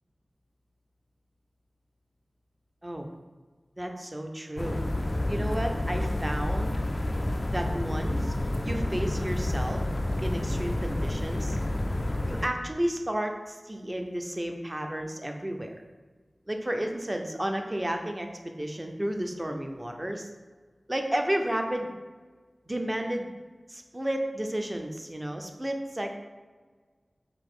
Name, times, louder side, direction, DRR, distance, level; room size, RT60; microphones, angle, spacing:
voice 1, 3.8-4.8 5.3-6.8 7.5-8.3 8.6-9.8 10.2-11.6 12.3-15.7 16.5-20.3 20.9-21.9 22.7-23.3 23.7-26.2, right 1 dB, 25° right, 4 dB, 0.6 m, -32 dB
sound 1, 4.6-12.5, left 1 dB, 45° left, 0.4 m, -29 dB
5.9 x 2.5 x 3.6 m, 1.4 s
wide cardioid pair, 50°, 0 cm